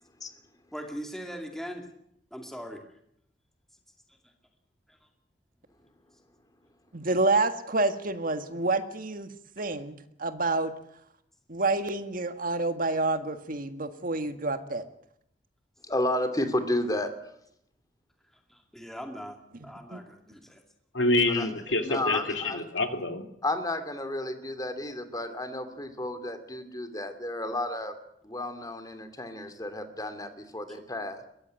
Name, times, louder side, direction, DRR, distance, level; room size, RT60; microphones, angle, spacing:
voice 1, 0.7-1.8 2.3-2.8 18.5-19.4 19.6-20.6, equal, ahead, 3 dB, 2.3 m, -40 dB
voice 2, 6.9-9.3 9.6-10.7 11.5-14.8 19.9-20.0, right 2 dB, 50° right, 9 dB, 1.8 m, -28 dB
voice 3, 15.8-17.1 21.3-21.5 21.8-22.7 23.4-27.9 28.2-31.2, left 1 dB, 20° left, 9 dB, 2.6 m, -32 dB
voice 4, 20.9-23.3, left 2 dB, 85° left, 6 dB, 2.8 m, -27 dB
22.0 x 15.5 x 9.4 m, 0.74 s
head